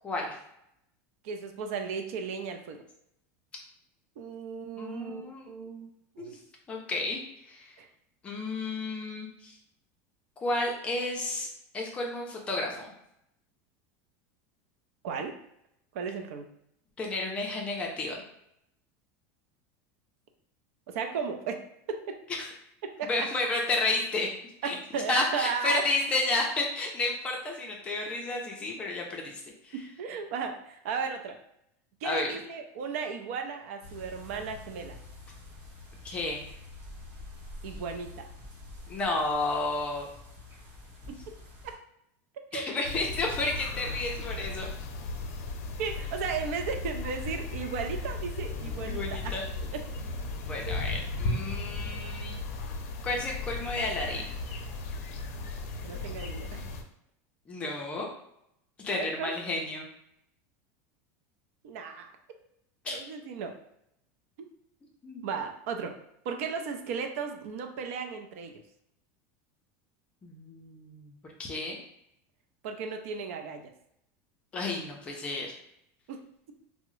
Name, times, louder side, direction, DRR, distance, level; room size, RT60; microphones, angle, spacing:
voice 1, 0.0-0.4 4.7-5.5 6.2-6.3 6.7-7.2 7.5-7.7 8.2-9.6 10.4-11.5 11.7-12.9 17.0-18.2 22.3-22.5 23.1-24.3 24.6-29.7 32.0-32.3 36.0-36.5 38.9-40.1 42.5-44.7 48.9-49.4 50.4-52.4 53.0-54.3 57.5-58.1 58.8-59.9 62.8-63.0 65.0-65.2 70.2-71.1 71.4-71.8 74.5-75.5, left 2 dB, 15° left, 0 dB, 0.5 m, -31 dB
voice 2, 1.2-2.8 4.2-5.9 6.2-6.4 7.8-7.9 15.0-15.4 15.9-16.5 20.9-22.2 22.8-23.3 24.6-26.0 29.7-31.4 32.0-35.0 37.6-38.3 41.3-41.4 41.6-41.7 42.5-42.6 45.8-49.3 49.7-49.8 50.6-50.8 55.8-56.6 58.9-59.3 61.6-62.1 62.9-63.6 65.2-66.0 66.2-68.5 72.6-73.6 76.1-76.2, right 5 dB, 65° right, 5 dB, 0.5 m, -35 dB
sound 1, 33.8-41.7, left 2 dB, 50° right, 1.4 m, -47 dB
sound 2, 42.8-56.8, left 3 dB, 75° left, 0.5 m, -36 dB
3.5 x 2.0 x 3.1 m, 0.77 s
supercardioid pair, 180°, 8 cm